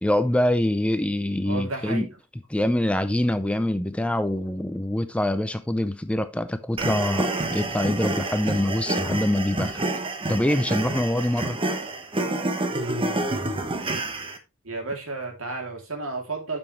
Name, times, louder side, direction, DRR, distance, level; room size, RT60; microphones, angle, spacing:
voice 1, 0.0-2.1 2.5-9.9 10.3-11.6, left 1 dB, 5° left, 0.4 m, -24 dB
voice 2, 1.4-2.1 14.6-16.6, right 3 dB, 70° right, 2.8 m, -32 dB
sound 1, 6.8-14.4, right 2 dB, 25° right, 1.0 m, -28 dB
8.8 x 7.0 x 3.1 m
head